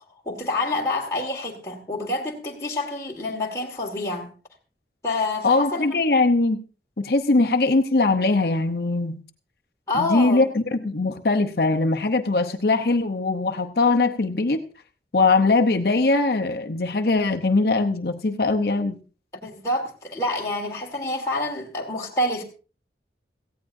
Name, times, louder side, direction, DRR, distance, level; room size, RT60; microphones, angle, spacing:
voice 1, 0.3-4.3 5.0-5.9 9.9-10.5 19.4-22.4, left 2 dB, 15° left, -3 dB, 1.9 m, -27 dB
voice 2, 5.4-6.6 7.0-9.2 9.9-14.6 15.1-19.0, left 3 dB, 60° left, 5 dB, 0.8 m, -21 dB
17.5 x 15.5 x 2.6 m, 0.36 s
head